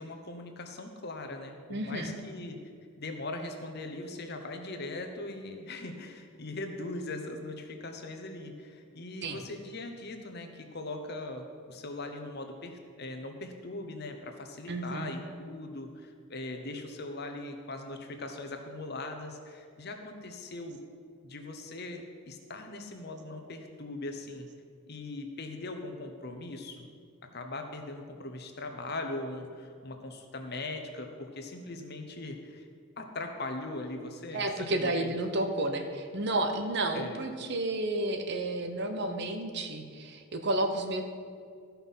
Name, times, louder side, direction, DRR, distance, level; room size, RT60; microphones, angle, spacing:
voice 1, 0.0-2.6 3.0-20.8 21.2-24.5 24.9-26.9 27.3-32.7 33.0-35.1 36.9-37.2, left 2 dB, 50° left, 5 dB, 1.0 m, -40 dB
voice 2, 1.7-2.1 9.2-9.4 14.7-15.1 34.3-41.0, right 1 dB, 50° right, 6 dB, 0.8 m, -31 dB
13.5 x 5.8 x 5.6 m, 2.2 s
head